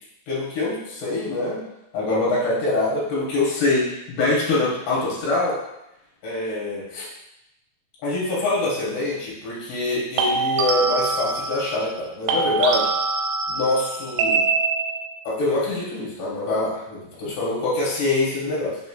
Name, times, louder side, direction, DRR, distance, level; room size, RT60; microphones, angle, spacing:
voice 1, 0.3-1.6 1.9-5.6 6.2-7.1 8.0-12.9 13.5-14.4 15.2-18.8, left 2 dB, 65° left, -6 dB, 2.5 m, -24 dB
sound 1, 5.2-5.5 10.2-12.0 12.3-15.2, right 4 dB, 85° right, 2.5 m, -24 dB
5.6 x 3.1 x 2.3 m, 0.86 s
omnidirectional pair, 4.5 m